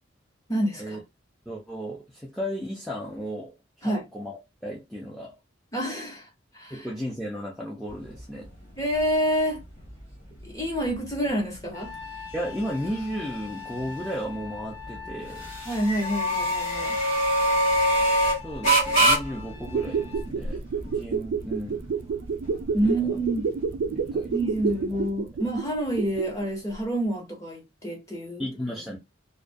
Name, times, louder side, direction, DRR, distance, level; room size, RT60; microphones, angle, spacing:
voice 1, 0.5-1.0 3.8-4.0 5.7-6.3 6.5-6.9 8.8-9.6 10.4-12.0 15.6-17.0 22.7-23.5 24.3-28.4, right 1 dB, 15° left, 0.8 m, -28 dB
voice 2, 1.5-5.4 6.7-8.5 12.3-15.4 18.4-21.9 22.8-23.2 23.9-24.3 28.4-29.0, equal, ahead, 0.4 m, -34 dB
sound 1, 7.9-25.1, right 1 dB, 35° left, 1.0 m, -28 dB
Trumpet, 11.7-20.3, left 8 dB, 55° left, 0.7 m, -43 dB
sound 2, 19.6-26.4 26.7-26.8, right 5 dB, 80° right, 0.3 m, -29 dB
2.2 x 2.2 x 2.5 m
head